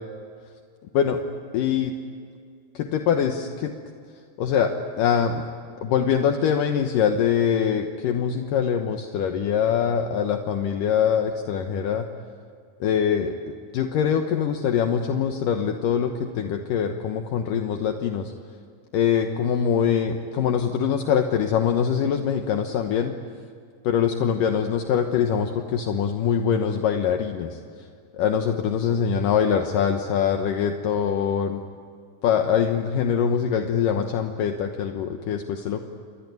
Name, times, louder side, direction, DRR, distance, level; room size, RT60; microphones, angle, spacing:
voice 1, 1.5-1.9 2.7-3.7 4.4-5.4 5.8-12.1 12.8-18.3 18.9-23.1 23.8-27.6 28.2-31.6 32.2-35.8, left 8 dB, 70° left, 5 dB, 2.6 m, -23 dB
28.5 x 22.0 x 9.4 m, 2.2 s
omnidirectional pair, 4.2 m